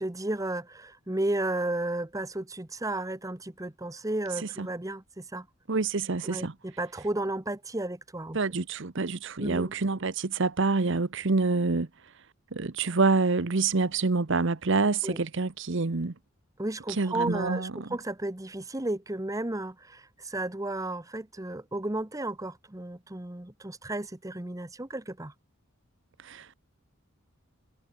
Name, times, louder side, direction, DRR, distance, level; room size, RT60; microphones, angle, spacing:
voice 1, 0.0-5.5 6.2-8.4 9.4-9.7 15.0-15.2 16.6-25.3, right 1 dB, 15° right, 1.0 m, -33 dB
voice 2, 5.7-6.5 8.3-11.9 12.5-16.1 17.0-17.9 26.2-26.6, right 3 dB, 60° right, 0.9 m, -27 dB
head